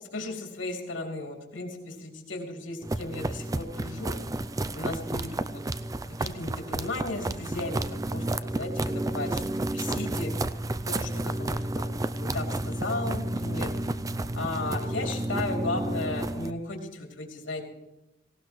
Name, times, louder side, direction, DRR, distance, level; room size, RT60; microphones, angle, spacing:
voice 1, 0.1-4.1 4.7-5.6 6.2-10.3 10.9-13.7 14.3-17.7, left 2 dB, 90° left, 1 dB, 3.1 m, -35 dB
sound 1, 2.8-16.5, right 2 dB, 20° right, 0.4 m, -31 dB
18.5 x 17.5 x 3.2 m, 0.93 s
head